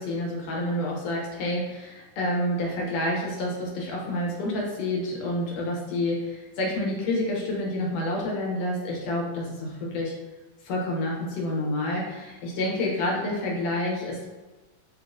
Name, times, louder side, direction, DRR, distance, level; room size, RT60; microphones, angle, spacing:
voice 1, 0.0-10.1 10.6-14.3, left 1 dB, 70° left, -2 dB, 1.8 m, -28 dB
4.7 x 3.6 x 2.5 m, 1.2 s
omnidirectional pair, 3.4 m